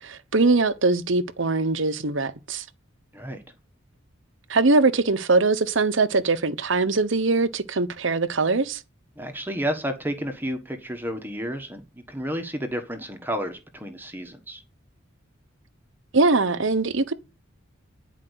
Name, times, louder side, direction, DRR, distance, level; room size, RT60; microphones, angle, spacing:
voice 1, 0.0-2.6 4.5-8.8 16.1-17.1, right 3 dB, 65° right, 1.0 m, -22 dB
voice 2, 9.2-11.8 12.1-14.6, equal, 10° right, 1.3 m, -31 dB
10.0 x 5.1 x 8.1 m
head